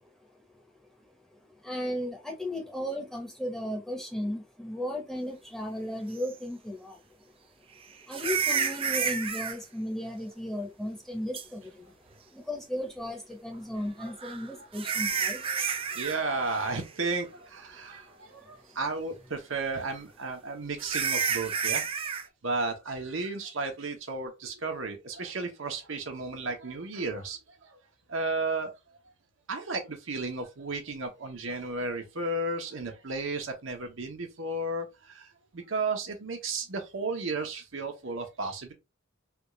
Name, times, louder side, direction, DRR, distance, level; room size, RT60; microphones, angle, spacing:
voice 1, 1.6-7.3 8.1-11.9 12.3-15.8 18.4-18.8, left 1 dB, ahead, 0.8 m, -35 dB
sound 1, 6.2-6.3 8.1-9.6 11.3-11.4 14.0-16.2 16.4-16.8 17.2-17.3 17.9-18.0 20.8-22.3, right 6 dB, 30° right, 0.4 m, -30 dB
voice 2, 15.5-21.9 22.4-27.8 28.1-28.7 29.5-38.7, right 3 dB, 80° right, 0.9 m, -33 dB
3.4 x 2.4 x 3.0 m
head